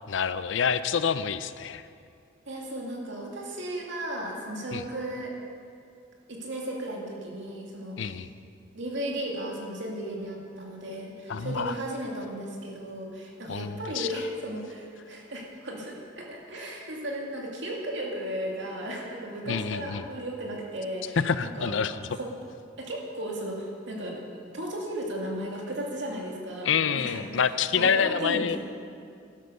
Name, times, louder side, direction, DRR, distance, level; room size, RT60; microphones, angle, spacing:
voice 1, 0.1-1.8 4.7-4.8 8.0-8.3 11.3-11.8 13.5-14.1 19.5-20.0 21.1-22.1 26.6-28.6, left 6 dB, 70° left, 13 dB, 0.5 m, -27 dB
voice 2, 2.5-5.3 6.3-8.0 8.7-21.7 22.2-22.3 22.8-24.2 24.5-27.2 27.7-28.6, right 1 dB, 70° right, -1 dB, 2.5 m, -35 dB
12.0 x 11.5 x 6.7 m, 2.3 s
head